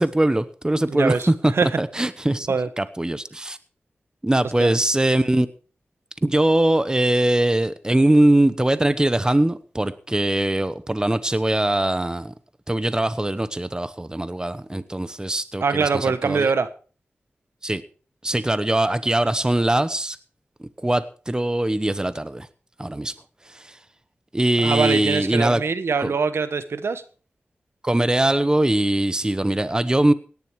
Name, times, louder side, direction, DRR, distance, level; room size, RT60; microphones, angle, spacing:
voice 1, 0.0-2.5 2.8-3.6 4.2-5.5 6.2-12.3 12.7-16.5 17.6-17.8 18.2-20.2 20.6-22.5 22.8-23.1 23.5-23.8 24.3-25.6 26.0-26.1 27.8-30.1, right 1 dB, 15° right, 1.0 m, -21 dB
voice 2, 0.9-1.7 2.5-2.7 4.6-4.7 15.6-16.7 24.6-27.0, right 5 dB, 75° right, 1.2 m, -23 dB
17.5 x 11.0 x 4.7 m
wide cardioid pair, 65°, 4 cm